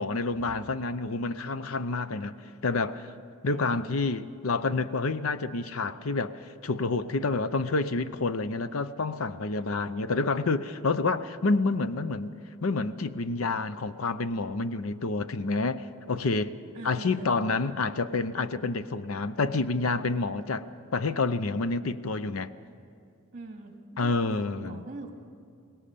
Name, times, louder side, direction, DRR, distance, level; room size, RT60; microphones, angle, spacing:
voice 1, 0.0-2.3 2.6-3.1 3.4-12.3 12.6-16.6 16.8-22.5 24.0-24.9, left 3 dB, 80° left, 0.7 m, -28 dB
voice 2, 3.5-3.8 16.7-17.4 23.3-25.1, right 2 dB, 40° right, 2.4 m, -43 dB
22.5 x 18.5 x 6.8 m
head